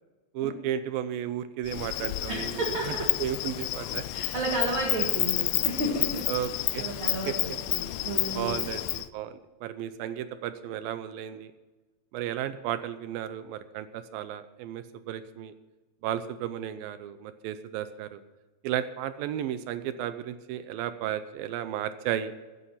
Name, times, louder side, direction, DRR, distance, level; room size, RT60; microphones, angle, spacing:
voice 1, 0.3-4.0 6.3-6.8 7.3-7.4 8.3-11.5 12.1-15.5 16.0-18.2 18.6-22.3, right 10 dB, 80° right, 12 dB, 2.3 m, -34 dB
Insect, 1.7-9.1, left 17 dB, 80° left, 2.3 m, -30 dB
voice 2, 2.3-3.0 4.1-6.2 6.8-8.6, right 2 dB, 40° right, -1 dB, 2.2 m, -32 dB
14.5 x 10.0 x 5.7 m, 1.2 s
omnidirectional pair, 4.3 m